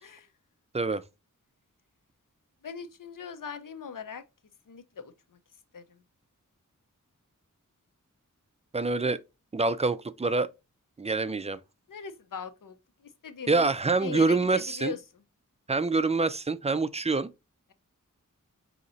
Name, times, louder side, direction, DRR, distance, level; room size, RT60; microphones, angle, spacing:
voice 1, 2.6-4.2 4.7-5.4 5.7-6.0 11.9-12.8 13.0-15.2, left 6 dB, 80° left, 0.7 m, -40 dB
voice 2, 8.7-9.2 9.5-10.5 11.0-11.6 13.5-14.9 15.7-17.3, right 3 dB, 20° right, 0.3 m, -26 dB
5.1 x 2.8 x 2.6 m
wide cardioid pair, 75°, 32 cm